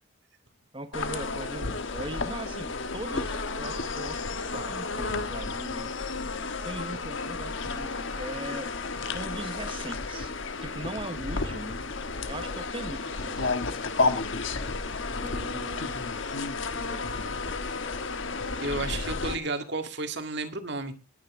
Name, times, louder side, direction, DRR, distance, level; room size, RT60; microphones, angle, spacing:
voice 1, 0.7-6.2 6.6-8.7 9.0-10.3 10.6-11.8 12.3-13.6 15.2-16.0 16.6-17.3, right 1 dB, 25° right, 1.1 m, -40 dB
sound 1, 0.9-19.3, left 3 dB, 60° left, 1.3 m, -32 dB
voice 2, 18.6-20.9, right 3 dB, 55° right, 1.9 m, -32 dB
19.5 x 9.6 x 3.6 m
head